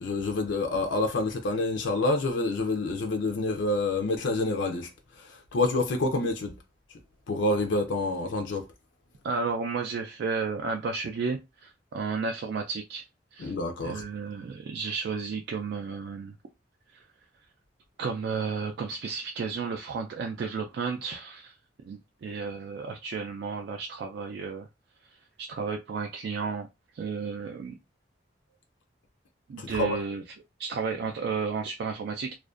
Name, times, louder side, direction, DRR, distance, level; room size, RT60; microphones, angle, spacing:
voice 1, 0.0-4.9 5.2-6.5 7.3-8.6 13.4-14.0 29.6-30.0, left 2 dB, 90° left, 0.4 m, -27 dB
voice 2, 9.2-13.0 13.3-13.5 13.8-16.4 16.9-17.0 18.0-21.6 21.8-24.7 25.4-26.7 26.9-27.7 29.5-30.2 30.6-32.3, right 5 dB, 60° right, 0.3 m, -32 dB
2.4 x 2.1 x 2.4 m
head